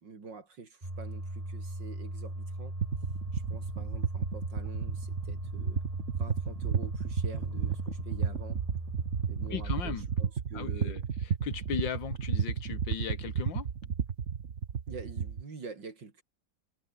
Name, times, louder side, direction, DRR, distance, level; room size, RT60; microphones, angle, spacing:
voice 1, 0.0-2.8 3.3-5.8 6.2-8.6 9.3-11.0 14.9-16.2, right 4 dB, 70° right, 3.8 m, -46 dB
sound 1, 0.8-10.1, right 1 dB, 15° right, 4.5 m, -38 dB
sound 2, 2.8-15.4, right 7 dB, 45° right, 1.4 m, -33 dB
voice 2, 9.5-10.1 10.5-13.7, left 8 dB, 80° left, 2.2 m, -37 dB
omnidirectional pair, 2.0 m